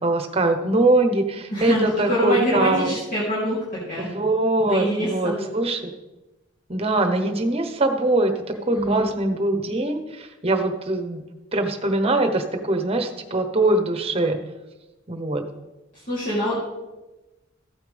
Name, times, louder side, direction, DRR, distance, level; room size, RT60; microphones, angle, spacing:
voice 1, 0.0-3.0 4.0-5.9 6.7-8.3 8.7-11.2 11.5-14.4 15.1-15.4, right 2 dB, 30° right, 5 dB, 1.1 m, -22 dB
voice 2, 1.5-3.6 3.9-4.1 4.7-5.4 8.7-9.1 16.1-16.6, equal, 45° left, -10 dB, 3.3 m, -24 dB
14.5 x 8.8 x 3.5 m, 1.1 s
head